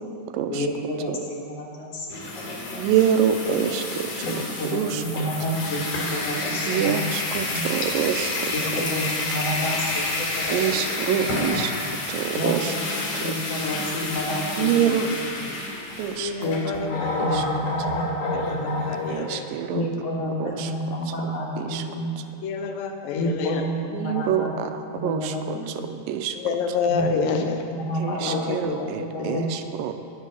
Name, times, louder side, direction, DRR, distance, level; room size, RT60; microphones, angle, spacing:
voice 1, 0.5-2.9 4.2-7.1 7.4-7.6 8.5-10.8 11.2-11.6 12.3-14.7 15.0-15.5 16.4-18.6 19.7-22.1 23.2-24.5 24.9-25.9 26.9-28.7 29.0-29.7, equal, 50° left, -2 dB, 2.5 m, -30 dB
sound 1, 2.1-19.1, left 2 dB, 70° left, 3.7 m, -29 dB
voice 2, 2.8-4.1 4.7-5.0 6.7-8.5 10.5-11.7 12.1-12.7 14.6-15.1 16.0-16.3 17.2-17.4 19.1-19.8 20.4-20.7 21.6-21.8 23.9-25.3 25.9-26.4 28.0-30.0, right 9 dB, 85° right, 8 dB, 2.3 m, -25 dB
voice 3, 8.6-9.0 9.7-9.8 10.8-10.9 11.2-11.5 12.2-12.4 16.1-17.4 18.3-19.5 20.6-20.7 22.4-23.7 26.4-27.6 28.2-28.9 29.2-29.5, left 5 dB, 90° left, 4 dB, 2.5 m, -29 dB
11.0 x 10.5 x 6.3 m, 2.6 s
omnidirectional pair, 4.0 m